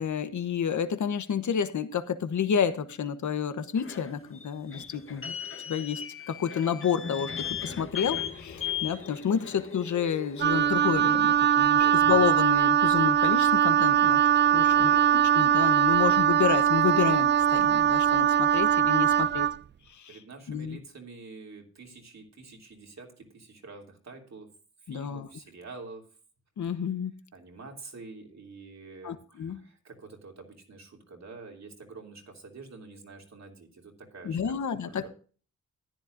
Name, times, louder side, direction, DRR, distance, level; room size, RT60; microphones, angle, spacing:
voice 1, 0.0-5.3 5.7-6.0 6.3-14.3 14.5-19.5 19.9-20.2 20.5-20.8 24.9-25.3 26.6-27.1 29.0-29.6 34.2-35.1, left 7 dB, 70° left, 11 dB, 1.1 m, -30 dB
sound 1, 3.8-11.0, left 8 dB, 45° left, 1.3 m, -37 dB
Wind instrument woodwind instrument, 10.4-19.6, right 9 dB, 40° right, 0.4 m, -22 dB
voice 2, 11.7-12.0 14.5-15.2 18.9-19.1 20.1-24.5 24.8-26.1 26.6-26.7 27.3-35.1, right 3 dB, 60° right, 2 dB, 3.1 m, -47 dB
14.0 x 10.5 x 2.6 m, 0.40 s
cardioid pair, 75°, 30 cm